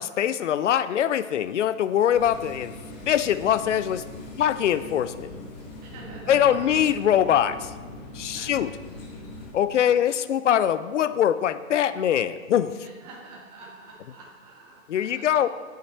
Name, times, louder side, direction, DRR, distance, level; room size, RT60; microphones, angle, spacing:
voice 1, 0.0-2.7 3.1-4.0 4.4-5.3 6.3-7.7 8.1-8.8 9.5-12.7 14.9-15.5, left 10 dB, 60° left, 14 dB, 0.5 m, -23 dB
sound 1, 2.1-9.5, left 2 dB, 30° left, 1.4 m, -41 dB
voice 2, 5.8-7.0 8.3-8.6 9.7-9.9 12.8-15.5, right 3 dB, 30° right, -4 dB, 1.4 m, -47 dB
8.8 x 5.7 x 4.4 m, 1.5 s
hypercardioid pair, 140°, 42 cm